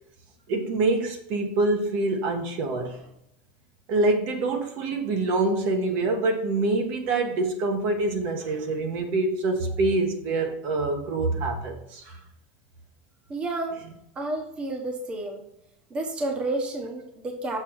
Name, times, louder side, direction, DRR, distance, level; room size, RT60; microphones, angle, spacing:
voice 1, 0.5-3.1 3.9-12.2, right 2 dB, 50° right, 4 dB, 1.2 m, -25 dB
voice 2, 13.3-13.7 14.1-15.4 15.9-17.6, right 2 dB, 20° right, 2 dB, 1.2 m, -30 dB
6.9 x 5.1 x 4.7 m, 0.78 s
supercardioid pair, 155°, 5 cm